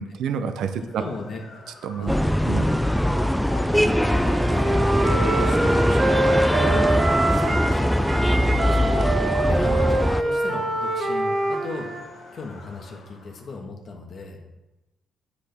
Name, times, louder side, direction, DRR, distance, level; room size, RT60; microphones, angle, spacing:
voice 1, 0.0-1.0 1.8-2.1 2.5-2.7, right 7 dB, 75° right, 9 dB, 0.6 m, -28 dB
Motor vehicle (road) / Siren, 0.8-13.5, left 3 dB, 70° left, 1.9 m, -41 dB
voice 2, 1.0-1.4 2.0-2.9 3.7-4.7 5.0-9.1 9.5-11.9 12.3-14.4, left 3 dB, 55° left, 1 dB, 1.6 m, -36 dB
sound 1, 2.1-10.2, equal, ahead, 0.3 m, -21 dB
Wind instrument woodwind instrument, 4.1-7.8 8.0-12.0, right 2 dB, 40° right, 1.3 m, -25 dB
8.1 x 6.5 x 3.5 m, 1.0 s
cardioid pair, 90°, 0 cm